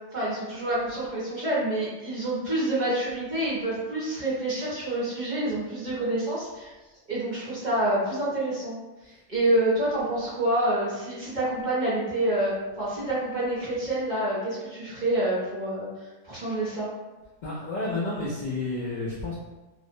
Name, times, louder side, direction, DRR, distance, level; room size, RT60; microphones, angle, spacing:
voice 1, 0.1-6.7 7.1-8.7 9.0-15.9 16.2-16.9, right 1 dB, 40° right, -8 dB, 0.8 m, -27 dB
voice 2, 17.4-19.3, left 2 dB, 75° left, -6 dB, 0.4 m, -30 dB
2.5 x 2.0 x 2.6 m, 1.1 s
omnidirectional pair, 1.3 m